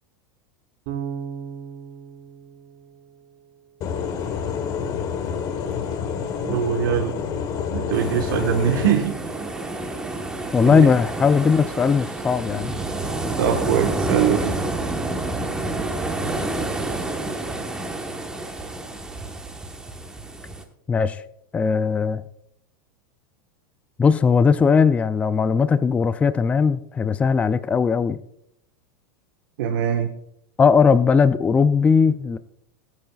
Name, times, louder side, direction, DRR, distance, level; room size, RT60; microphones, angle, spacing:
Bass guitar, 0.9-3.9, right 7 dB, 55° right, 4.0 m, -36 dB
sound 1, 3.8-8.9, left 7 dB, 35° left, 1.3 m, -28 dB
voice 1, 6.4-7.2 7.7-9.2 10.7-10.9 13.4-14.5 29.6-30.1, right 9 dB, 75° right, 1.3 m, -22 dB
sound 2, 7.9-20.6, right 2 dB, 5° right, 1.2 m, -29 dB
voice 2, 10.5-12.7 20.9-21.2 21.5-22.2 24.0-28.2 30.6-32.4, left 5 dB, 10° left, 0.4 m, -18 dB
24.5 x 9.1 x 2.4 m
supercardioid pair, 145°, 11 cm